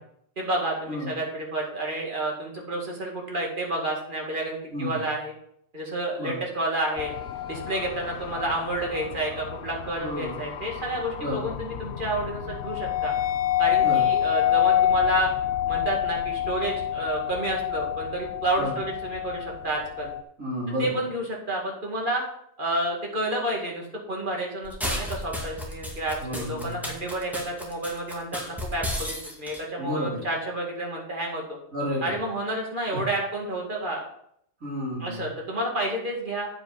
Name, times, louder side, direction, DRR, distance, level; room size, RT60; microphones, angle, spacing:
voice 1, 0.4-5.3 5.7-7.1 7.5-13.1 13.6-15.3 15.7-20.1 20.8-22.2 22.6-31.6 32.0-34.0 35.0-36.5, right 1 dB, 35° right, -1 dB, 2.2 m, -30 dB
voice 2, 4.7-5.0 6.2-6.3 10.0-10.5 11.2-11.4 13.8-14.0 18.6-18.7 20.4-21.0 26.2-26.9 29.8-30.2 31.7-32.1 32.9-33.0 34.6-35.2, equal, 70° right, -7 dB, 4.1 m, -31 dB
sound 1, 7.0-20.2, left 11 dB, 65° left, 0.7 m, -28 dB
sound 2, 24.6-29.6, left 1 dB, ahead, 2.0 m, -33 dB
8.8 x 7.7 x 4.0 m, 0.70 s
omnidirectional pair, 1.4 m